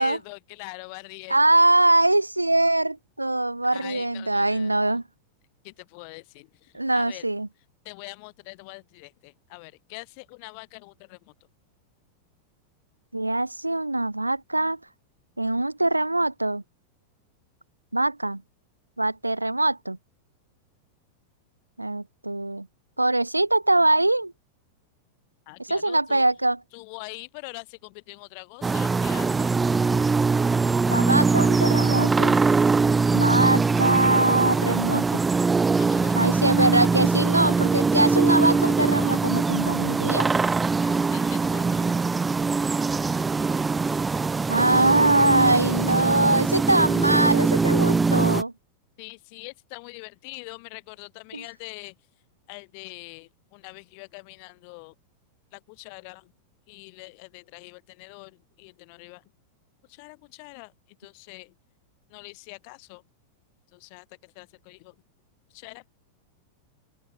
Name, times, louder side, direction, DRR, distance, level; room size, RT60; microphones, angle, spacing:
voice 1, 0.0-1.6 3.7-5.0 5.6-7.3 7.9-11.3 25.5-26.3 26.7-29.6 35.8-36.6 37.4-37.6 40.8-41.9 49.0-52.0 52.5-54.9 55.5-56.3 56.7-59.2 59.9-60.7 61.0-61.5 62.1-63.0 63.7-65.0 65.5-65.9, left 37 dB, 45° left, 3.5 m, -43 dB
voice 2, 1.3-5.0 6.7-7.5 13.1-14.8 15.4-16.6 17.9-18.4 19.0-20.0 21.8-22.7 23.0-24.3 25.7-26.6 30.9-32.4 33.1-35.2 36.2-40.3 44.5-48.5 51.3-51.4, right 2 dB, 85° right, 0.6 m, -22 dB
sound 1, 28.6-48.4, right 4 dB, 15° right, 0.3 m, -22 dB
open air
figure-of-eight pair, 90°, 0 cm